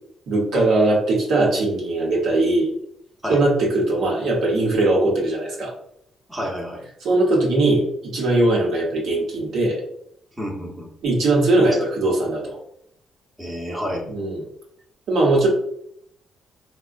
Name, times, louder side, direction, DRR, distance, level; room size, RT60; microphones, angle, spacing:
voice 1, 0.3-2.7 3.3-5.7 7.0-9.8 11.0-12.6 14.1-14.4 15.1-15.5, right 2 dB, 70° right, -3 dB, 1.0 m, -20 dB
voice 2, 6.3-6.8 10.4-10.9 11.7-11.8 13.4-14.1, equal, 10° right, -3 dB, 0.8 m, -29 dB
3.4 x 2.2 x 2.5 m, 0.70 s
cardioid pair, 90°, 0 cm